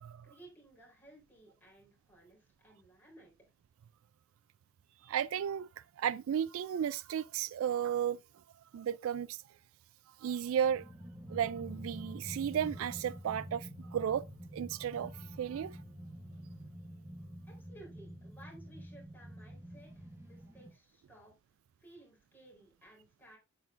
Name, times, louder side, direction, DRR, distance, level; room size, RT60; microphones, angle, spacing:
voice 1, 0.2-3.3 17.4-21.3 21.8-23.4, right 1 dB, 10° left, 4.0 m, -58 dB
voice 2, 5.0-5.7 6.0-8.2 8.7-9.4 10.2-10.9 11.3-14.2 14.5-15.8, right 9 dB, 70° right, 0.3 m, -34 dB
sound 1, 10.6-20.7, equal, 15° right, 1.1 m, -48 dB
8.8 x 8.0 x 2.5 m
head